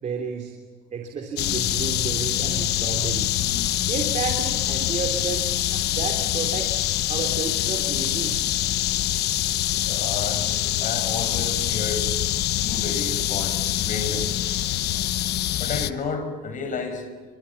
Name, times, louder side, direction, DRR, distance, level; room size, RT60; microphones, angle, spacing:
voice 1, 0.0-0.5 0.9-3.4 3.9-6.7 7.1-8.4, right 5 dB, 45° right, 3 dB, 3.4 m, -31 dB
sound 1, 1.4-15.9, left 13 dB, 75° left, 1.1 m, -25 dB
voice 2, 9.8-12.1 12.5-14.3 15.6-17.1, left 4 dB, 50° left, 8 dB, 5.9 m, -31 dB
28.0 x 25.0 x 7.2 m, 1.5 s
cardioid pair, 110°, 17 cm